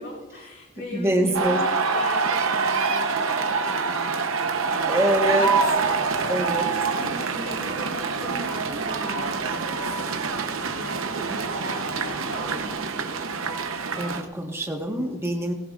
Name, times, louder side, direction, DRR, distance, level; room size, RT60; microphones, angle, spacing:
voice 1, 0.0-5.5 5.9-10.0 10.6-13.2, equal, 65° left, -5 dB, 3.0 m, -39 dB
voice 2, 0.9-1.6 4.8-5.5 6.3-6.6 13.9-15.5, equal, 15° right, 1 dB, 1.4 m, -24 dB
sound 1, 1.3-14.2, right 4 dB, 90° right, 0.9 m, -26 dB
sound 2, 5.8-12.7, right 2 dB, 60° right, 1.9 m, -41 dB
17.5 x 16.0 x 2.5 m, 1.1 s
head